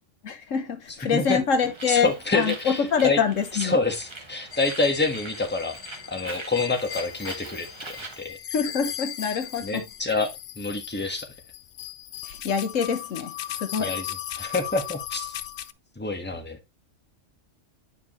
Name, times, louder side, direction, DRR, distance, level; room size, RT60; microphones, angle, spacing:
voice 1, 0.2-3.8 8.5-9.8 12.2-13.9, left 6 dB, 80° left, 1.4 m, -25 dB
Bird, 1.6-8.2, right 2 dB, 25° right, 1.2 m, -42 dB
voice 2, 1.9-3.2 3.5-5.7 6.1-7.7 8.2-8.4 9.6-10.3 10.6-11.3 13.8-14.0 14.3-15.4 16.0-16.6, left 3 dB, 10° left, 1.3 m, -27 dB
sound 1, 4.5-15.7, left 12 dB, 65° left, 0.8 m, -37 dB
9.6 x 4.9 x 3.1 m
omnidirectional pair, 1.3 m